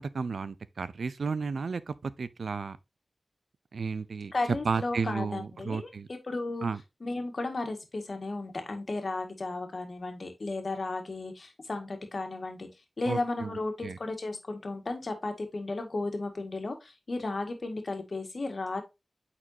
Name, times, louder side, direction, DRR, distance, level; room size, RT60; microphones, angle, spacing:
voice 1, 0.0-2.8 3.7-4.3 4.6-6.1 6.6-6.8 13.0-13.5 13.8-14.0, right 5 dB, 90° right, 0.5 m, -33 dB
voice 2, 4.3-6.7 7.0-12.7 13.0-18.8, left 2 dB, 65° left, 1.7 m, -34 dB
8.8 x 4.3 x 2.7 m
cardioid pair, 50°, 0 cm